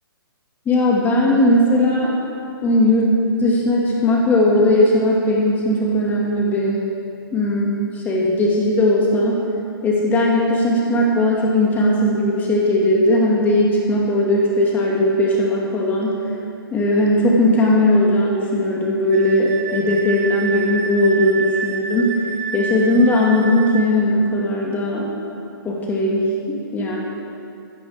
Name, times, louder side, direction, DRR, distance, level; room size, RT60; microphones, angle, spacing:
voice 1, 0.6-2.2 2.6-6.8 7.3-7.8 8.0-9.3 9.8-16.2 16.7-22.2 22.5-25.0 25.6-27.0, left 1 dB, 15° left, -3 dB, 1.9 m, -18 dB
Wind instrument woodwind instrument, 19.1-23.9, right 6 dB, 40° right, 1.1 m, -29 dB
15.5 x 14.0 x 3.5 m, 2.5 s
hypercardioid pair, 150°, 12 cm